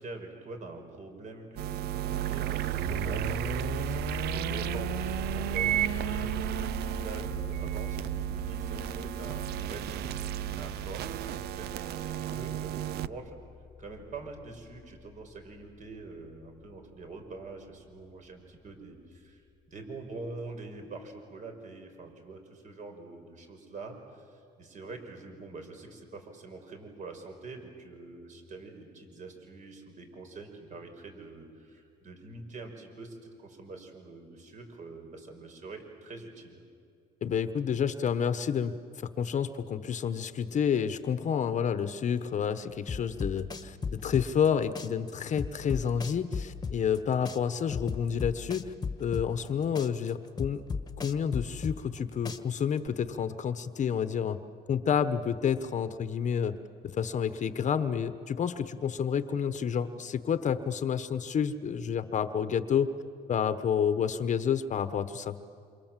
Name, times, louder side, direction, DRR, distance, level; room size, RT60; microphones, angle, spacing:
voice 1, 0.0-13.4 13.8-19.4 19.7-36.6, right 3 dB, 45° right, 4 dB, 5.5 m, -45 dB
sound 1, 1.6-13.1, right 12 dB, 70° right, 0.7 m, -33 dB
sound 2, 2.8-17.7, left 5 dB, 5° left, 1.7 m, -42 dB
voice 2, 37.2-38.8 39.2-43.8 44.0-48.7 49.0-50.6 51.0-54.4 54.7-56.6 56.9-62.9 63.3-65.4, left 7 dB, 45° left, 11 dB, 1.2 m, -29 dB
sound 3, 42.9-44.5 44.7-47.0 47.2-49.5 49.7-52.0 52.2-52.9, left 5 dB, 25° left, 1.5 m, -35 dB
28.0 x 27.5 x 7.6 m, 2.4 s
cardioid pair, 110°, 17 cm